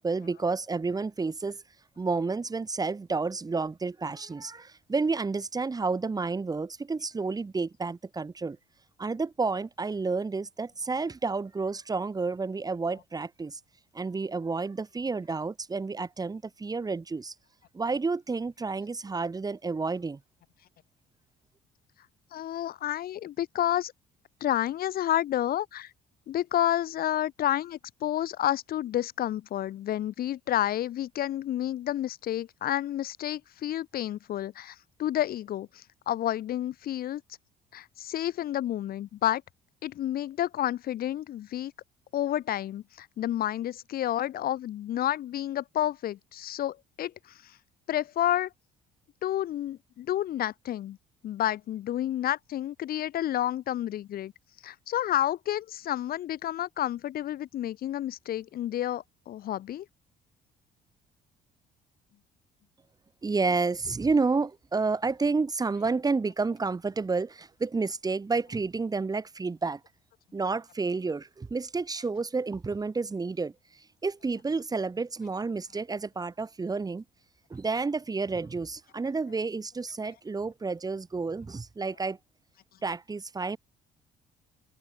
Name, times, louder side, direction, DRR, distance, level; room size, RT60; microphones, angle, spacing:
voice 1, 0.0-1.6 2.0-8.6 9.0-13.6 13.9-17.3 17.7-20.2 63.2-69.8 70.3-73.5 74.0-77.0 77.5-82.2 82.8-83.6, right 4 dB, 20° right, 3.6 m, -30 dB
voice 2, 22.3-23.9 24.4-25.9 26.3-37.2 37.7-39.4 39.8-41.7 42.1-47.1 47.9-48.5 49.2-51.0 51.2-54.3 54.6-59.9, left 12 dB, 60° left, 2.1 m, -30 dB
cardioid pair, 110°, 17 cm